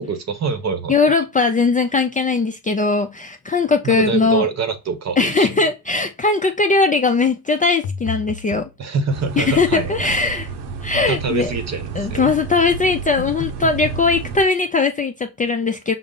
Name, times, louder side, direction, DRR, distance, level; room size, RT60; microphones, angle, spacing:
voice 1, 0.0-1.0 3.8-5.5 8.8-10.1 10.9-12.4, right 5 dB, 45° right, 0.8 m, -25 dB
voice 2, 0.9-4.5 5.2-8.7 9.4-10.5 10.8-11.5 12.0-15.9, left 4 dB, 20° left, 0.3 m, -19 dB
sound 1, 7.8-8.7 13.2-14.0, left 7 dB, 75° left, 0.6 m, -31 dB
sound 2, 9.1-14.4, right 5 dB, 85° right, 0.8 m, -31 dB
5.3 x 2.0 x 3.6 m
cardioid pair, 110°, 39 cm